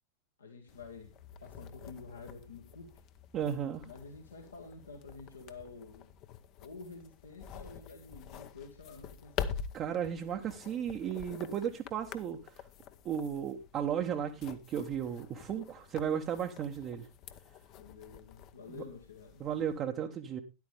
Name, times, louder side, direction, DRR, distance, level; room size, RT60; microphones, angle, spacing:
voice 1, 0.4-1.1 1.4-2.9 3.8-6.1 6.6-9.6 17.7-19.4, left 4 dB, 75° left, 3 dB, 1.6 m, -49 dB
sound 1, 0.7-19.8, left 8 dB, 40° left, 0.8 m, -47 dB
voice 2, 3.3-3.8 9.7-12.7 13.0-17.1 18.7-18.8 19.4-20.4, right 8 dB, 35° right, 3 dB, 0.9 m, -35 dB
13.0 x 10.5 x 3.4 m, 0.27 s
figure-of-eight pair, 90°, 0 cm